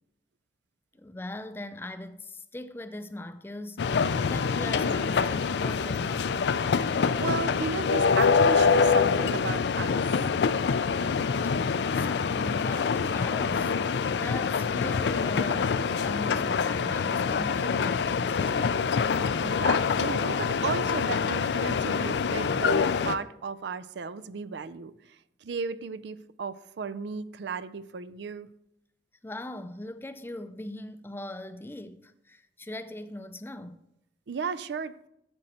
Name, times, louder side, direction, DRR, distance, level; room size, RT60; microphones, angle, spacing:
voice 1, 0.9-6.5 11.9-18.9 29.2-33.8, left 1 dB, 15° left, 0.4 m, -40 dB
sound 1, 3.8-23.2, left 5 dB, 75° left, 0.4 m, -25 dB
voice 2, 6.9-10.0 19.4-28.5 34.3-35.0, right 5 dB, 80° right, 0.4 m, -35 dB
9.0 x 7.7 x 4.2 m
head